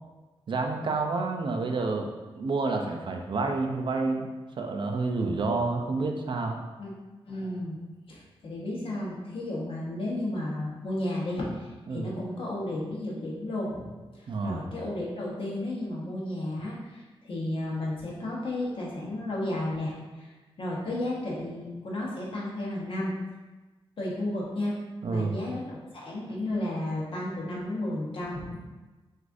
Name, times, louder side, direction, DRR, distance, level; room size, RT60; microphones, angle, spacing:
voice 1, 0.5-2.1 2.3-4.3 4.6-6.6 11.9-12.1 14.3-14.7 25.0-25.3, right 3 dB, 55° right, 3 dB, 0.4 m, -29 dB
voice 2, 7.2-7.8 8.1-13.9 14.1-20.3 20.6-23.1 24.0-24.7 25.1-28.5, left 1 dB, 60° left, -4 dB, 1.0 m, -33 dB
6.2 x 2.5 x 2.6 m, 1.2 s
wide cardioid pair, 155°, 10 cm